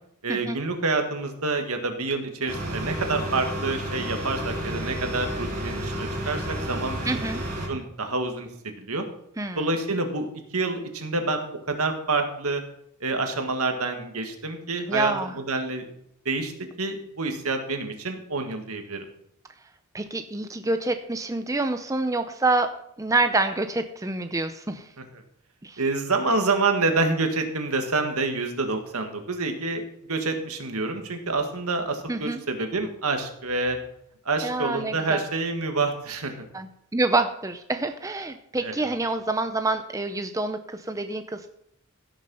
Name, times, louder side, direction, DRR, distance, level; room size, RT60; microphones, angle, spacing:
voice 1, 0.2-7.3 7.7-8.5 8.8-9.0 9.6-10.3 10.5-12.6 13.0-15.9 16.3-19.0 25.0-25.2 25.8-29.8 30.1-33.8 34.3-36.4 38.6-38.8, right 3 dB, 75° right, 5 dB, 1.9 m, -27 dB
sound 1, 2.5-7.7, right 1 dB, 35° right, 4.7 m, -31 dB
voice 2, 7.0-7.4 9.4-9.7 14.9-15.3 19.9-22.7 23.0-24.9 25.6-25.8 32.1-32.4 34.4-35.3 36.5-41.5, right 2 dB, 15° right, 8 dB, 0.6 m, -27 dB
16.0 x 6.6 x 5.6 m, 0.74 s
head